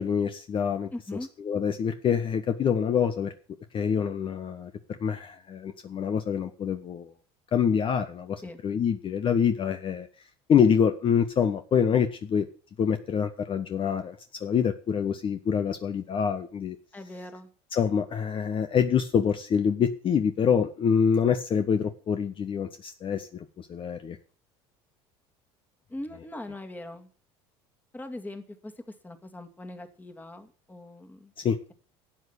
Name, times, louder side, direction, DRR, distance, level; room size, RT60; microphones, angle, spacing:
voice 1, 0.0-0.9 1.5-3.3 3.7-4.7 5.0-7.1 7.5-10.1 10.5-12.5 12.8-16.8 17.7-24.2 31.4-31.6, left 7 dB, 40° left, 9 dB, 1.2 m, -26 dB
voice 2, 0.9-1.3 8.4-8.6 16.9-17.5 25.9-27.1 27.9-31.3, left 1 dB, 10° left, 6 dB, 2.3 m, -40 dB
12.0 x 8.5 x 8.1 m, 0.40 s
supercardioid pair, 100°, 14 cm